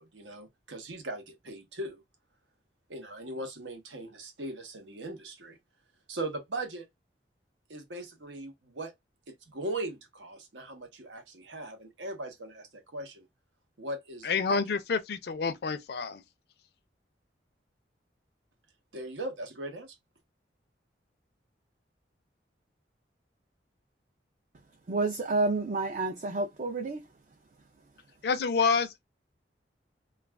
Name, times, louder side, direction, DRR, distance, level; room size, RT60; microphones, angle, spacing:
voice 1, 0.0-2.0 2.9-5.6 6.1-6.8 7.7-8.9 9.3-13.3 13.8-14.6 18.9-19.9, right 1 dB, 80° right, 0.9 m, -39 dB
voice 2, 14.2-16.2 28.2-29.0, left 5 dB, 60° left, 0.4 m, -28 dB
voice 3, 24.9-27.0, right 3 dB, 40° right, 0.4 m, -29 dB
2.4 x 2.3 x 3.3 m
head